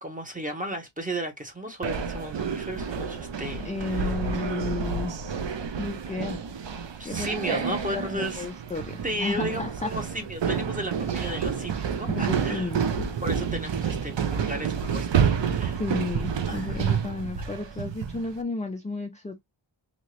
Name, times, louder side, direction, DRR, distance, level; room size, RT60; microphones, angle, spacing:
voice 1, 0.0-4.1 7.0-8.4 9.0-12.7 13.2-15.8 16.5-17.0, right 1 dB, 15° right, 1.0 m, -34 dB
sound 1, 1.8-18.3, right 7 dB, 65° right, 0.6 m, -29 dB
voice 2, 3.6-5.2 5.8-6.6 7.0-9.9 12.1-13.1 15.8-19.4, left 3 dB, 15° left, 0.3 m, -33 dB
2.9 x 2.8 x 2.9 m
wide cardioid pair, 90°, 47 cm